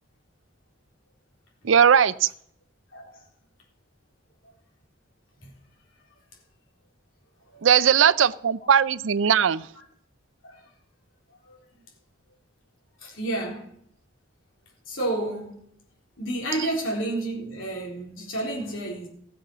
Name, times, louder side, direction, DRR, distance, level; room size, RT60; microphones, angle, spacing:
voice 1, 1.6-2.3 7.6-9.7, right 8 dB, 80° right, 0.5 m, -19 dB
voice 2, 2.9-3.3 5.4-5.5 9.8-9.9 10.4-10.7 11.4-11.6 13.0-13.7 14.9-15.6 16.2-19.1, right 1 dB, 90° left, 4.0 m, -31 dB
17.0 x 7.1 x 6.1 m
head